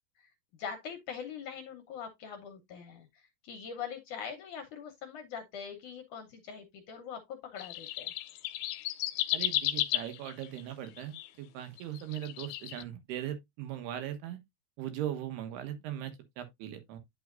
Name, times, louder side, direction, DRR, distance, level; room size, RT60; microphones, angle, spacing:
voice 1, 0.6-3.1 3.4-8.1, left 7 dB, 70° left, 2.0 m, -42 dB
sound 1, 7.6-11.3 11.8-12.8, left 15 dB, 85° left, 2.7 m, -33 dB
voice 2, 9.3-14.4 14.8-17.0, right 11 dB, 80° right, 3.4 m, -39 dB
9.5 x 6.2 x 2.5 m
omnidirectional pair, 4.7 m